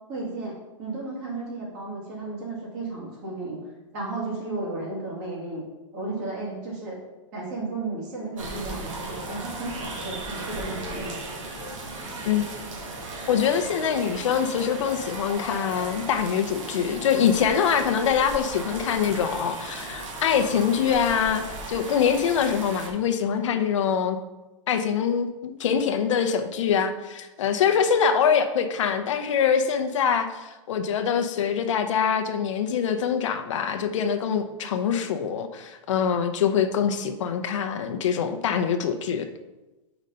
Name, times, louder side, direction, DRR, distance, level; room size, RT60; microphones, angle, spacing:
voice 1, 0.1-3.6 3.9-5.6 5.9-7.0 7.3-11.1, right 2 dB, 35° right, -4 dB, 2.1 m, -33 dB
sound 1, 8.4-22.9, right 2 dB, 70° right, 1.5 m, -36 dB
voice 2, 13.3-24.2 24.7-39.3, left 7 dB, 65° left, 7 dB, 0.6 m, -24 dB
5.1 x 4.0 x 5.5 m, 1.1 s
supercardioid pair, 175°, 17 cm